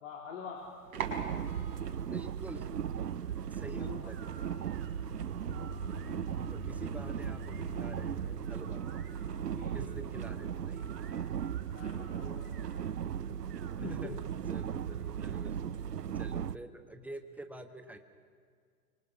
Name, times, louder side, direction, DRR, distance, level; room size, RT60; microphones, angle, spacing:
voice 1, 0.0-0.6 3.8-4.1 9.3-10.1 11.7-12.6 13.8-14.2 16.1-16.2, left 6 dB, 55° left, 0 dB, 3.5 m, -46 dB
sound 1, 0.6-8.1, right 2 dB, 60° right, 5.7 m, -46 dB
sound 2, 1.0-16.6, right 8 dB, 85° right, 0.7 m, -37 dB
voice 2, 2.1-2.7 3.5-4.2 6.5-8.8 9.7-10.9 13.8-14.2 14.5-15.6 16.1-18.0, right 1 dB, 5° right, 6 dB, 1.6 m, -47 dB
sound 3, 4.1-8.0 8.5-10.4 10.7-12.9 13.3-14.8, right 6 dB, 25° right, 2.6 m, -57 dB
29.5 x 24.0 x 6.3 m, 2.1 s
figure-of-eight pair, 110°, 47 cm